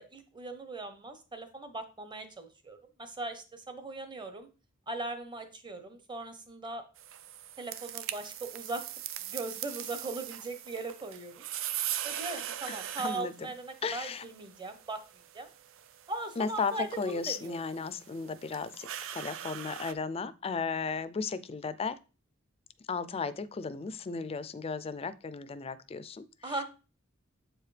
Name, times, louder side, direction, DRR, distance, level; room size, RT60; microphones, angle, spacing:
voice 1, 0.0-4.5 4.9-6.8 7.6-8.8 9.3-11.4 12.0-15.0 15.3-15.5 16.1-17.6 26.4-26.6, right 2 dB, 20° right, 8 dB, 0.9 m, -39 dB
sound 1, 7.0-19.9, right 11 dB, 65° right, 0.4 m, -41 dB
voice 2, 12.7-13.3 13.8-14.2 16.4-22.0 22.9-26.5, left 5 dB, 30° left, 14 dB, 0.4 m, -35 dB
7.7 x 4.7 x 3.3 m, 0.33 s
head